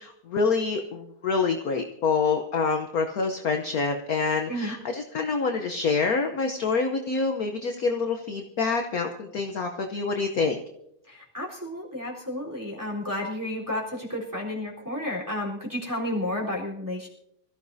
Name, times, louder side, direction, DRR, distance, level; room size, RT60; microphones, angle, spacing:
voice 1, 0.0-10.6, left 4 dB, 55° left, 5 dB, 1.2 m, -26 dB
voice 2, 11.1-17.1, left 1 dB, 10° right, -3 dB, 3.8 m, -31 dB
25.5 x 14.5 x 2.7 m, 0.78 s
omnidirectional pair, 2.2 m